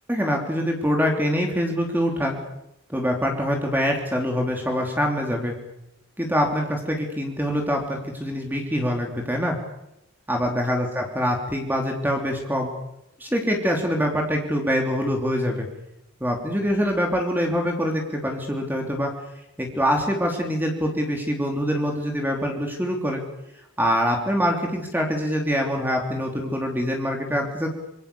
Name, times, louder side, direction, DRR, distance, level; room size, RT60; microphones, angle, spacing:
voice 1, 0.1-2.4 2.9-5.5 6.2-9.6 10.3-12.7 13.2-15.7 16.2-19.1 19.6-23.2 23.8-27.7, equal, 10° right, 1 dB, 3.3 m, -24 dB
26.5 x 25.5 x 7.0 m, 0.85 s
head